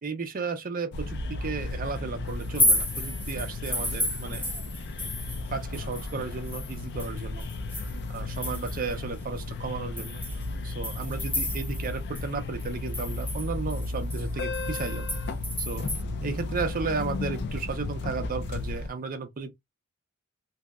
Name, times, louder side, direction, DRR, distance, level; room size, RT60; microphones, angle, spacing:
voice 1, 0.0-4.5 5.5-7.5 8.1-10.2 10.6-15.1 15.6-15.9 16.2-19.6, right 4 dB, 40° right, 0.5 m, -34 dB
sound 1, 0.9-18.9, left 2 dB, 50° left, 0.4 m, -34 dB
sound 2, 2.4-5.5 5.7-8.9 9.4-9.5 10.0-11.9 12.2-12.3 12.6-16.0, left 1 dB, 10° left, 0.6 m, -31 dB
2.7 x 2.1 x 2.2 m
head